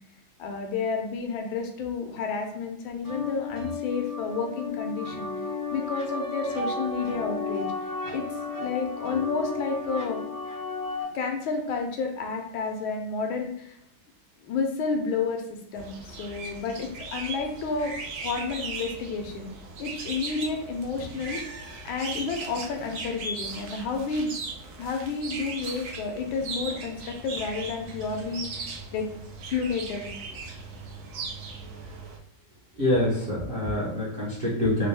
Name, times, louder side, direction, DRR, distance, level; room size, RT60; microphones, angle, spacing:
voice 1, 0.4-5.3 5.7-7.7 8.1-8.3 8.6-10.2 11.1-13.8 14.4-15.4 15.7-18.0 18.2-19.5 19.8-21.4 21.8-24.3 24.8-29.1 29.5-30.1, left 4 dB, 80° left, 3 dB, 1.4 m, -30 dB
sound 1, 3.0-11.0, left 3 dB, 25° left, 0.4 m, -33 dB
sound 2, 15.7-32.2, right 3 dB, 85° right, 0.7 m, -38 dB
voice 2, 32.8-34.9, left 1 dB, 40° right, -8 dB, 0.9 m, -25 dB
4.3 x 2.2 x 3.3 m, 0.74 s
omnidirectional pair, 2.2 m